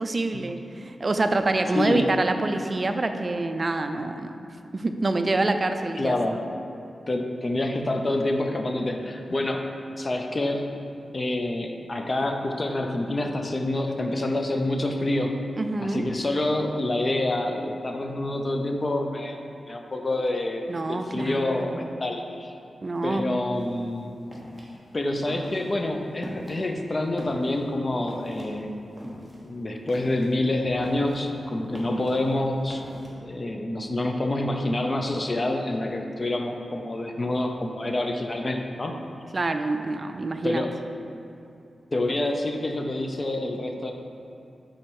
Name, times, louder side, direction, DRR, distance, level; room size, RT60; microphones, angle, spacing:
voice 1, 0.0-4.3 4.7-6.2 15.6-16.0 20.7-21.9 22.8-23.3 39.3-40.6, right 2 dB, 35° right, 7 dB, 0.4 m, -26 dB
voice 2, 1.7-2.1 6.0-6.4 7.1-9.6 10.0-10.7 11.1-15.4 15.8-19.4 19.7-22.5 23.0-24.2 24.9-28.7 29.4-32.8 33.1-39.0 40.4-40.7 41.9-43.9, left 1 dB, 35° left, 3 dB, 0.5 m, -27 dB
sound 1, 23.5-33.1, equal, 5° left, 1.2 m, -43 dB
5.9 x 4.2 x 4.7 m, 2.6 s
wide cardioid pair, 90°, 0 cm